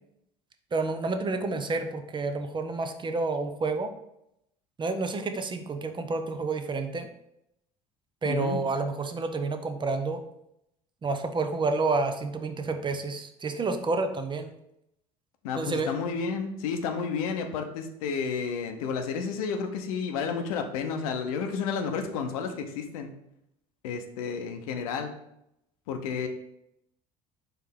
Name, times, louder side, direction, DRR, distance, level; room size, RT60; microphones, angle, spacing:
voice 1, 0.7-3.9 4.8-7.1 8.2-10.2 11.0-14.5 15.6-15.9, right 3 dB, 25° right, 7 dB, 0.6 m, -29 dB
voice 2, 8.2-8.6 15.4-23.1 23.8-25.1 25.9-26.3, left 5 dB, 85° left, 6 dB, 0.6 m, -31 dB
4.5 x 3.2 x 3.6 m, 0.80 s
hypercardioid pair, 70°, 18 cm